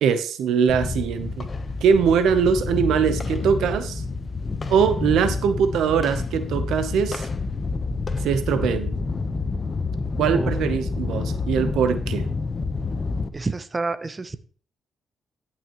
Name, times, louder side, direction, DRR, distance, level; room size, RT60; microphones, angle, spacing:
voice 1, 0.0-1.5 1.8-4.0 4.7-7.3 8.2-8.9 10.2-12.3, right 7 dB, 85° right, 10 dB, 0.9 m, -22 dB
sound 1, 0.7-13.3, left 4 dB, 35° left, 1.0 m, -28 dB
voice 2, 13.3-14.4, right 3 dB, 30° right, 12 dB, 0.7 m, -28 dB
14.0 x 5.9 x 3.1 m, 0.43 s
cardioid pair, 75°, 0 cm